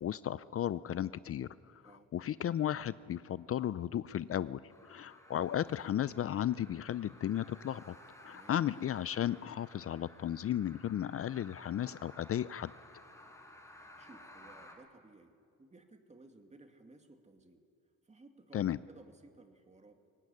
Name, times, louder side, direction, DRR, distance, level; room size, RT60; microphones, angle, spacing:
voice 1, 0.0-1.8 2.1-8.0 8.2-12.7 18.5-18.8, left 11 dB, 50° left, 16 dB, 0.5 m, -35 dB
sound 1, 4.7-14.8, left 1 dB, 10° left, 5.2 m, -56 dB
voice 2, 8.3-8.6 13.8-17.6 18.0-20.0, right 2 dB, 20° right, 5 dB, 2.5 m, -58 dB
22.5 x 18.5 x 9.9 m, 2.4 s
cardioid pair, 90°, 30 cm